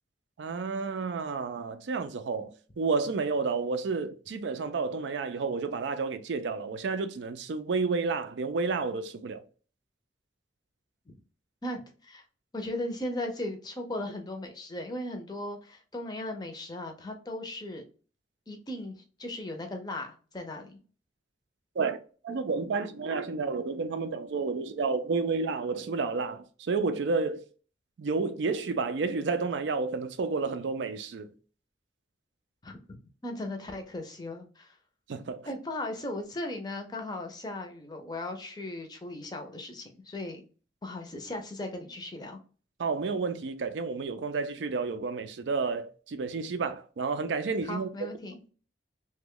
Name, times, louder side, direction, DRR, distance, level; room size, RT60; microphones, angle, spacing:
voice 1, 0.4-9.4 21.8-27.4 28.0-31.3 35.1-35.5 42.8-47.9, right 4 dB, 75° right, 0.4 m, -31 dB
voice 2, 11.6-12.2 12.5-17.8 18.5-20.8 32.6-32.8 33.2-34.8 35.5-40.4 40.8-42.4 47.6-48.4, left 1 dB, 20° left, 0.5 m, -37 dB
3.0 x 2.2 x 3.6 m
head